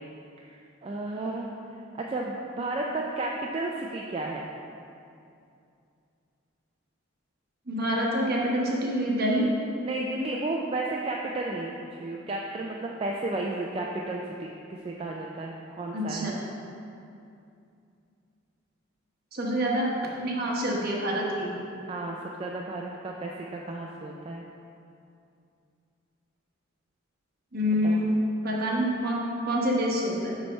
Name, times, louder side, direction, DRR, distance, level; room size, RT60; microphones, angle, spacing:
voice 1, 0.4-1.5 2.0-4.5 9.8-16.3 21.9-24.4 27.8-28.0, right 2 dB, 30° right, -1 dB, 0.3 m, -33 dB
voice 2, 7.7-9.5 15.9-16.3 19.3-19.9 20.2-21.5 27.5-28.1 28.4-30.3, equal, 50° right, -3 dB, 1.1 m, -26 dB
7.0 x 3.3 x 5.4 m, 2.6 s
head